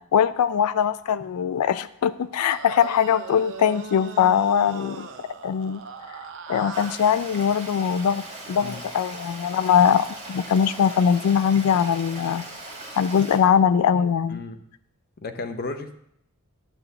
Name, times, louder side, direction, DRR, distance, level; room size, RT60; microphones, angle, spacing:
voice 1, 0.1-5.1 5.4-5.8 6.1-6.2 6.5-8.2 8.5-12.4 13.0-14.4, left 8 dB, 80° left, 14 dB, 0.3 m, -21 dB
sound 1, 2.5-7.2, right 5 dB, 60° right, 0.7 m, -39 dB
Stream, 6.7-13.4, right 2 dB, 30° right, 1.9 m, -39 dB
voice 2, 15.2-15.9, left 3 dB, 45° left, 7 dB, 0.7 m, -33 dB
10.0 x 3.5 x 6.8 m, 0.72 s
head